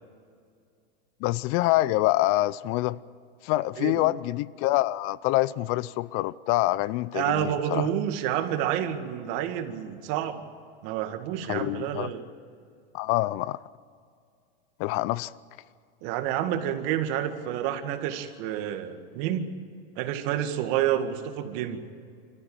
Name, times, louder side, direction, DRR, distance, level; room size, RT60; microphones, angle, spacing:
voice 1, 1.2-3.0 3.4-7.9 11.5-12.1 12.9-13.6 14.8-15.3, left 17 dB, 50° left, 0.6 m, -26 dB
voice 2, 7.1-10.4 10.8-12.3 16.0-19.5 20.0-21.8, right 10 dB, 60° right, 2.1 m, -29 dB
27.5 x 14.5 x 8.8 m
supercardioid pair, 115°, 29 cm